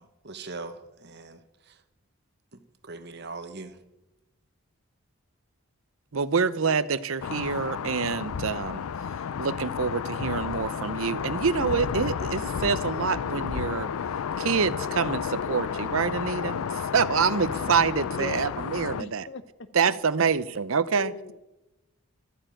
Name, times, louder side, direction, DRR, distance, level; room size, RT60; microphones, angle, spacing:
voice 1, 0.0-1.8 2.5-3.8, right 3 dB, 50° right, 8 dB, 1.3 m, -41 dB
voice 2, 6.1-8.8 9.4-13.9 14.4-19.2 19.7-21.1, right 5 dB, 65° right, 16 dB, 0.7 m, -26 dB
sound 1, 7.2-19.0, left 7 dB, 80° left, 0.4 m, -32 dB
voice 3, 18.0-18.6 19.0-19.7 21.0-21.4, left 3 dB, 55° left, 12 dB, 0.9 m, -38 dB
13.5 x 8.9 x 9.1 m, 0.97 s
head